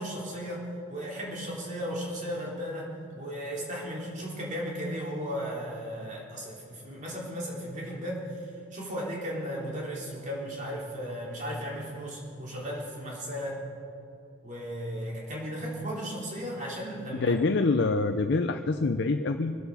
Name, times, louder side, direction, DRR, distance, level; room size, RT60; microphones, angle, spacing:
voice 1, 0.0-13.6 14.4-17.4, equal, 40° right, -3 dB, 3.5 m, -35 dB
voice 2, 17.1-19.6, left 3 dB, 60° left, 7 dB, 0.5 m, -26 dB
23.5 x 8.1 x 7.0 m, 2.7 s
head